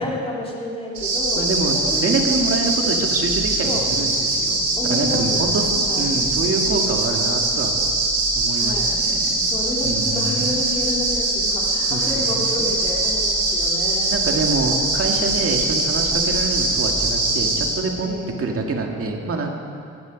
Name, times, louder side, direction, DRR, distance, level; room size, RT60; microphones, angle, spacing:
voice 1, 0.0-2.3 3.6-3.8 4.8-5.4 5.9-6.2 8.5-9.0 9.4-14.2 18.0-18.4, left 1 dB, 20° left, -3 dB, 3.3 m, -30 dB
sound 1, 1.0-17.7, right 2 dB, 65° right, 4.7 m, -22 dB
voice 2, 1.4-1.7 2.0-7.8 8.3-9.4 9.8-10.6 11.9-12.7 14.1-19.5, right 3 dB, 50° right, 2 dB, 2.2 m, -26 dB
18.0 x 11.5 x 5.3 m, 2.3 s
cardioid pair, 90°, 30 cm